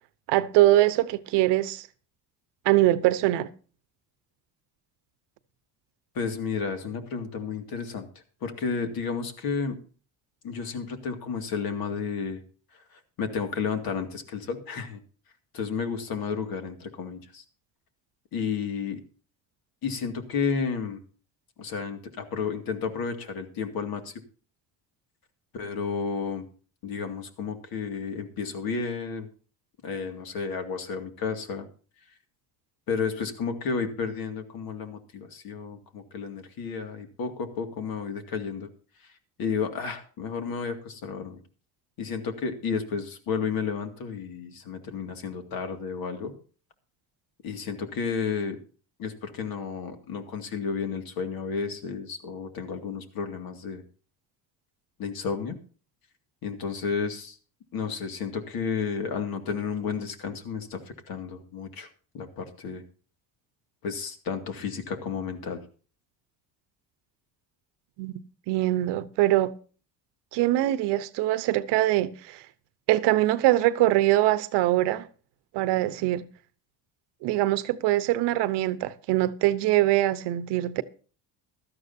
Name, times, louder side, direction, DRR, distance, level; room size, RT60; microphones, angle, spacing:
voice 1, 0.3-1.9 2.6-3.5 68.0-69.5 70.3-72.4 72.9-75.1 75.5-76.2 77.2-80.8, right 15 dB, 80° right, 1.0 m, -23 dB
voice 2, 6.1-8.1 8.4-9.8 10.4-12.4 12.7-15.0 15.5-17.4 18.3-19.0 19.8-21.0 21.6-24.1 25.5-26.5 26.8-29.3 29.8-31.7 32.9-38.7 39.0-39.1 39.4-41.4 42.0-46.3 47.4-48.6 49.0-53.8 55.0-55.6 56.4-57.4 57.7-61.9 62.1-62.8 63.8-65.7, left 5 dB, 60° left, 2.3 m, -32 dB
16.0 x 12.5 x 2.7 m
cardioid pair, 120°, 41 cm